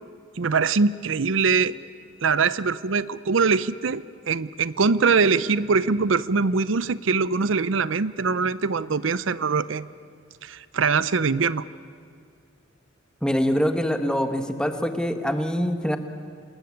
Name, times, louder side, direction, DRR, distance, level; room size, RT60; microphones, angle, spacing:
voice 1, 0.4-1.8 2.2-9.9 10.4-11.6, right 4 dB, 70° right, 17 dB, 0.6 m, -23 dB
voice 2, 13.2-16.0, equal, 5° left, 7 dB, 1.5 m, -24 dB
27.5 x 20.0 x 9.7 m, 2.3 s
head